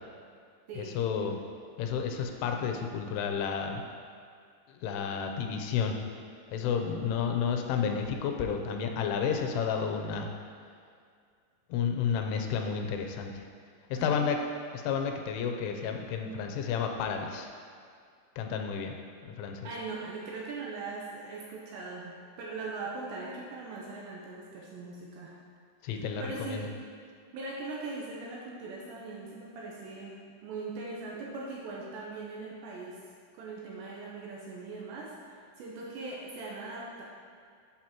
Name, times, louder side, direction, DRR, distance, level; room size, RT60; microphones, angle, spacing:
voice 1, 0.7-1.4 1.8-3.8 4.7-6.0 6.5-10.3 11.7-13.4 14.0-14.4 14.7-17.5 18.4-18.9 19.2-19.7 25.8-26.7, left 6 dB, 85° left, 4 dB, 3.2 m, -31 dB
voice 2, 13.9-14.3 19.6-25.3 25.8-26.7 27.3-33.0 33.3-37.0, right 3 dB, 75° right, -4 dB, 2.8 m, -40 dB
11.5 x 8.1 x 3.0 m, 2.2 s
omnidirectional pair, 5.6 m